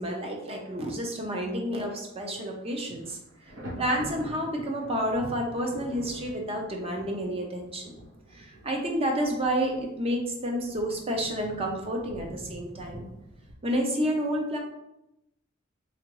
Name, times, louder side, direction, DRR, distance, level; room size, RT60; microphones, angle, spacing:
voice 1, 0.0-3.2 3.8-7.9 8.3-13.0 13.6-14.6, equal, 30° right, 2 dB, 0.7 m, -30 dB
Thunder, 2.1-2.4 2.7-13.5, right 1 dB, 70° right, 1.1 m, -45 dB
3.7 x 3.2 x 3.0 m, 0.86 s
head